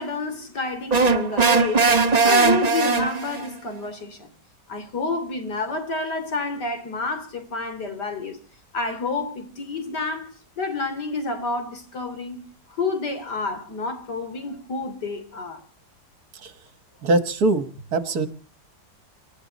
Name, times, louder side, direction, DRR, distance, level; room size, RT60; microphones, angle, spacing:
voice 1, 0.0-1.9 2.2-4.3 4.7-8.4 8.7-15.6, left 3 dB, 70° left, 3.6 m, -29 dB
sound 1, 0.9-3.5, right 4 dB, 25° right, 1.0 m, -19 dB
voice 2, 17.0-17.6 17.9-18.3, right 2 dB, 60° right, 1.8 m, -21 dB
27.0 x 12.0 x 4.1 m
omnidirectional pair, 1.9 m